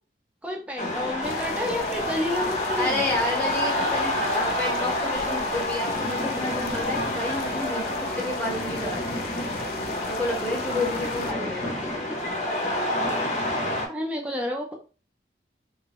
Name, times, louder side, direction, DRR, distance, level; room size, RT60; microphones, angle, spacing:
voice 1, 0.4-3.0 13.9-14.7, left 1 dB, 5° right, 0 dB, 0.8 m, -30 dB
sound 1, 0.8-13.9, left 1 dB, 40° left, 0.8 m, -28 dB
sound 2, 1.2-11.3, left 5 dB, 55° left, 0.3 m, -40 dB
voice 2, 2.8-7.8 8.2-9.2 10.1-11.8, left 2 dB, 10° left, -3 dB, 1.1 m, -30 dB
3.1 x 2.9 x 3.0 m, 0.35 s
head